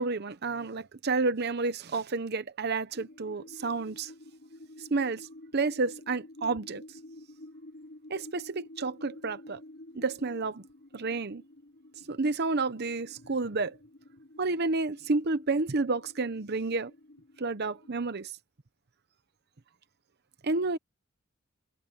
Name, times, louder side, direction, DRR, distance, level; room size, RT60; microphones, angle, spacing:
voice 1, 0.0-4.1 4.9-5.3 5.5-6.8 8.1-9.6 9.9-10.6 10.9-11.4 12.1-13.8 14.4-16.9 17.4-18.3 20.4-20.8, right 3 dB, 50° right, 0.8 m, -30 dB
sound 1, 2.9-17.9, left 1 dB, 55° left, 3.9 m, -51 dB
head